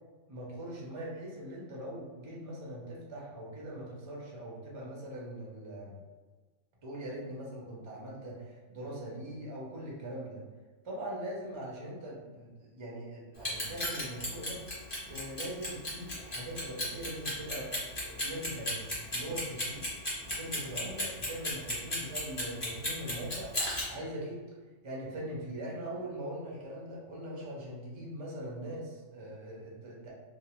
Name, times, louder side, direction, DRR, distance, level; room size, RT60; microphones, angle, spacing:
voice 1, 0.3-6.0 6.8-10.4 10.8-14.6 15.1-17.7 18.0-18.8 19.1-19.9 20.3-23.5 23.9-24.4 24.8-30.1, right 1 dB, 45° right, -4 dB, 0.3 m, -41 dB
Clock, 13.3-23.8, left 1 dB, 30° left, 0.8 m, -34 dB
2.5 x 2.0 x 2.9 m, 1.4 s
omnidirectional pair, 1.4 m